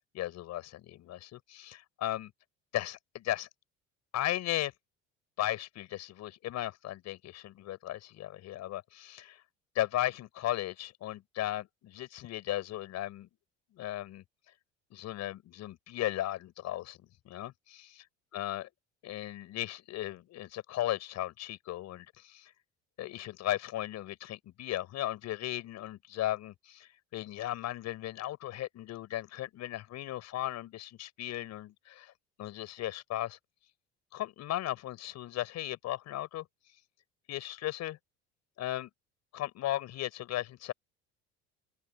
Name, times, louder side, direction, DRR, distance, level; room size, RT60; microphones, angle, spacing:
voice 1, 0.1-2.3 2.7-3.5 4.1-4.7 5.4-9.4 9.7-13.3 13.8-14.2 14.9-17.0 17.2-17.5 18.3-18.7 19.0-22.5 23.0-32.1 32.4-33.4 34.1-36.4 37.3-38.0 38.6-38.9 39.3-40.7, left 14 dB, 60° left, 6.4 m, -36 dB
hypercardioid pair, 75°, 30 cm